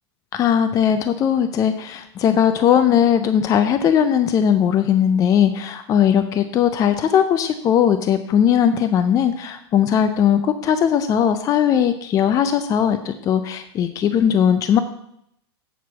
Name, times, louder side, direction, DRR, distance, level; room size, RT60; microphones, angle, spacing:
voice 1, 0.3-14.8, left 9 dB, 25° left, 10 dB, 0.5 m, -18 dB
8.0 x 4.6 x 7.1 m, 0.75 s
supercardioid pair, 135°, 15 cm